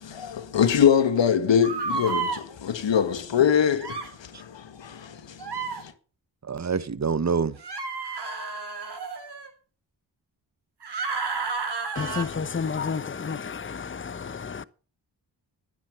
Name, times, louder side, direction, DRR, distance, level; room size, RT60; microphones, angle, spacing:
voice 1, 0.0-5.9, left 8 dB, 70° left, 1.9 m, -24 dB
sound 1, 1.6-2.4 3.8-4.1 5.4-5.8 7.6-9.5 10.8-12.3, right 4 dB, 60° right, 4.4 m, -31 dB
voice 2, 6.4-7.6, right 5 dB, 35° right, 1.3 m, -26 dB
voice 3, 12.0-14.6, left 5 dB, 25° left, 0.9 m, -31 dB
13.5 x 9.8 x 6.7 m
cardioid pair, 45°, 46 cm